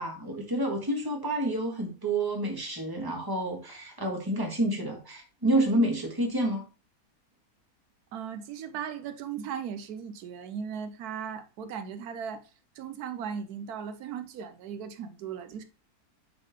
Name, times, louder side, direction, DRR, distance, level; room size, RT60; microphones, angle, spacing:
voice 1, 0.0-6.6, right 1 dB, 15° right, 1.4 m, -29 dB
voice 2, 8.1-12.4 12.8-15.6, right 7 dB, 85° right, 1.2 m, -37 dB
7.9 x 3.9 x 3.4 m
omnidirectional pair, 1.6 m